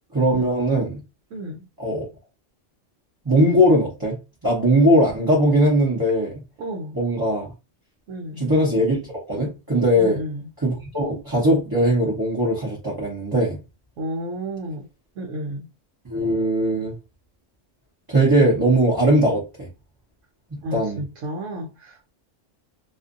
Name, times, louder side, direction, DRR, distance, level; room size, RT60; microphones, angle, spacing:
voice 1, 0.1-1.0 1.8-2.0 3.2-6.3 6.9-7.5 8.4-9.0 9.3-10.2 10.6-13.6 16.0-16.9 18.1-19.7 20.5-21.0, equal, 20° right, 0.8 m, -20 dB
voice 2, 1.3-1.7 6.6-7.0 8.1-8.5 10.0-10.4 14.0-14.9 15.2-15.7 20.6-22.1, equal, 85° right, 1.0 m, -32 dB
2.6 x 2.5 x 2.5 m
omnidirectional pair, 1.3 m